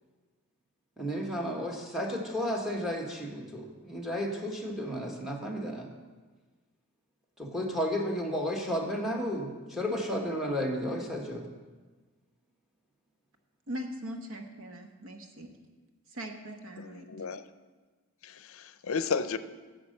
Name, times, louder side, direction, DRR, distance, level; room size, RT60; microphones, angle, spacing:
voice 1, 1.0-5.9 7.4-11.4, equal, ahead, 1.4 m, -33 dB
voice 2, 13.7-15.5 16.1-17.1, equal, 65° right, 1.1 m, -40 dB
voice 3, 16.8-17.4 18.2-19.4, left 5 dB, 65° left, 0.5 m, -33 dB
10.5 x 7.7 x 6.6 m
head